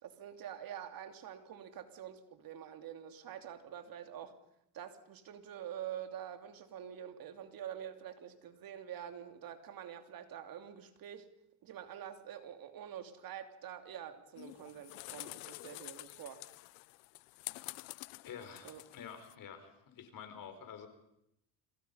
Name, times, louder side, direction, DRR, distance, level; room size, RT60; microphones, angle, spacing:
voice 1, 0.0-4.3 4.7-11.3 11.6-16.4 18.6-18.8, right 9 dB, 55° right, 8 dB, 2.8 m, -46 dB
sound 1, 14.4-19.3, left 23 dB, 90° left, 0.8 m, -48 dB
voice 2, 18.2-20.9, left 7 dB, 50° left, 7 dB, 5.2 m, -49 dB
29.0 x 26.0 x 5.6 m, 0.81 s
supercardioid pair, 100°, 41 cm